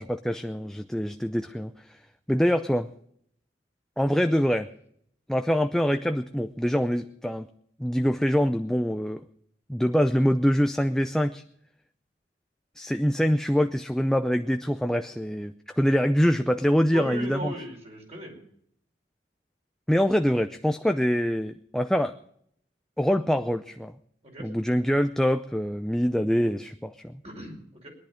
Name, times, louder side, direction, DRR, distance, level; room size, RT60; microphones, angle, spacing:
voice 1, 0.0-1.7 2.3-2.9 4.0-4.7 5.3-7.5 7.8-9.2 9.7-11.4 12.8-17.5 19.9-22.1 23.0-23.9 24.4-27.2, equal, 5° left, 8 dB, 0.5 m, -24 dB
voice 2, 16.9-18.4 24.2-24.5 27.2-27.9, equal, 40° right, 1 dB, 5.2 m, -37 dB
22.0 x 11.0 x 5.1 m, 0.67 s
head